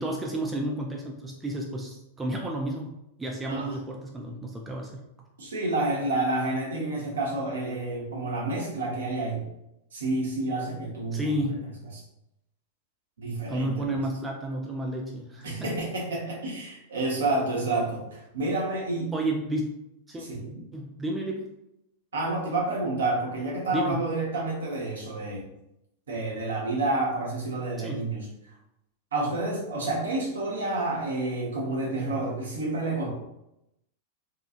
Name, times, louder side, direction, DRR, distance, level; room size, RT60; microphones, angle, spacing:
voice 1, 0.0-2.9 3.2-5.0 11.1-11.6 13.5-15.7 19.1-19.8 20.1-20.3 20.7-21.5 23.7-24.1 27.8-28.1, right 1 dB, 15° right, 0 dB, 0.4 m, -31 dB
voice 2, 5.4-9.4 9.9-11.3 11.9-12.0 13.2-13.8 15.4-19.1 20.2-20.5 22.1-25.4 26.1-28.3 29.1-33.1, right 2 dB, 65° right, -2 dB, 0.8 m, -29 dB
2.8 x 2.3 x 2.4 m, 0.85 s
figure-of-eight pair, 95°, 0 cm